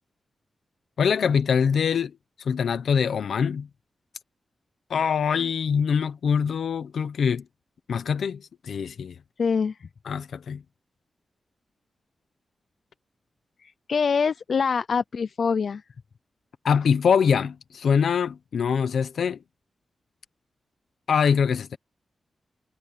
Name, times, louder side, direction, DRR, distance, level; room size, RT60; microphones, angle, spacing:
voice 1, 1.0-2.1 2.4-3.7 4.9-7.4 7.9-9.1 10.1-10.6 16.6-19.4 21.1-21.8, left 6 dB, 85° left, 1.0 m, -23 dB
voice 2, 9.4-9.9 13.6-15.8, left 5 dB, 60° left, 0.5 m, -25 dB
wide cardioid pair, 130°, 0 cm